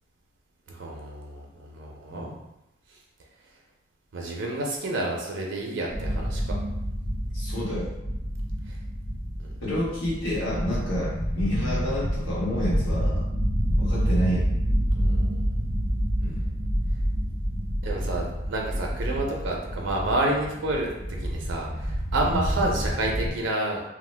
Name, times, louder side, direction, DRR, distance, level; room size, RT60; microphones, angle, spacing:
voice 1, 0.7-2.4 2.9-3.0 4.1-6.6 8.7-8.8 9.4-9.5 15.0-15.5 17.8-20.9 21.2-23.8, right 2 dB, 65° right, -1 dB, 0.5 m, -29 dB
sound 1, 5.9-23.3, equal, 40° left, 1.4 m, -28 dB
voice 2, 7.3-7.9 9.6-13.2 13.8-14.5 16.2-16.4 22.3-22.4, equal, 85° left, -8 dB, 1.3 m, -29 dB
2.9 x 2.0 x 3.2 m, 0.89 s
head